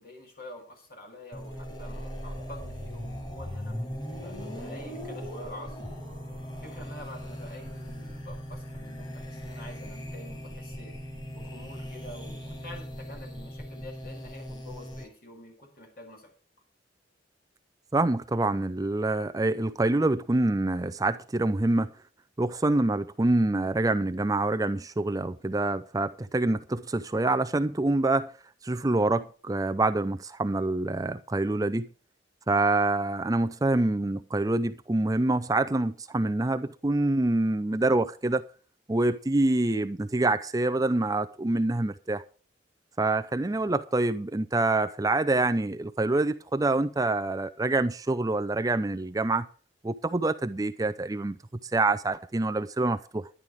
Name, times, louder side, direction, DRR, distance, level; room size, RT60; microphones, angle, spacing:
voice 1, 0.0-3.9 4.2-5.8 6.5-11.0 11.3-16.3, left 1 dB, 55° left, 6.3 m, -47 dB
sound 1, 1.3-15.0, equal, 25° left, 7.8 m, -39 dB
voice 2, 17.9-21.9 22.4-28.3 28.6-31.9 32.5-38.4 38.9-42.2 43.0-49.5 49.8-53.3, right 2 dB, 20° right, 0.5 m, -26 dB
11.5 x 10.5 x 5.0 m
head